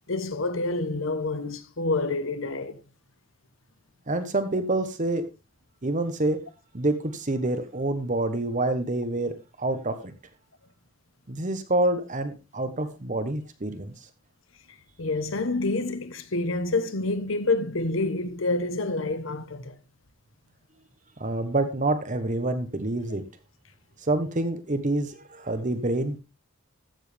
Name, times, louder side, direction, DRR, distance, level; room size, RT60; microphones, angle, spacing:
voice 1, 0.1-2.8 15.0-19.8, left 2 dB, 65° left, 1.1 m, -28 dB
voice 2, 4.1-5.2 5.8-6.4 6.7-10.1 11.3-13.9 21.2-23.2 24.1-26.2, right 2 dB, 35° right, 1.1 m, -27 dB
14.0 x 7.3 x 3.4 m
head